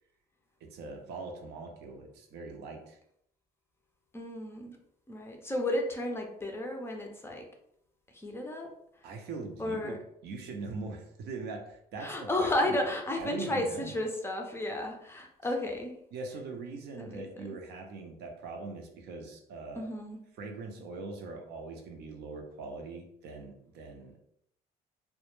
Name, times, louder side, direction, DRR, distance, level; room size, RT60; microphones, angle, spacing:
voice 1, 0.6-3.0 9.0-10.0 10.2-12.8 13.2-13.9 16.1-19.9 20.4-24.2, right 3 dB, 75° right, 3 dB, 0.6 m, -42 dB
voice 2, 4.1-4.8 5.1-7.4 8.1-8.7 9.6-10.0 12.0-16.0 17.0-17.6 19.8-20.2, left 1 dB, 15° left, 2 dB, 0.4 m, -33 dB
2.1 x 2.0 x 3.0 m, 0.74 s
cardioid pair, 110°, 17 cm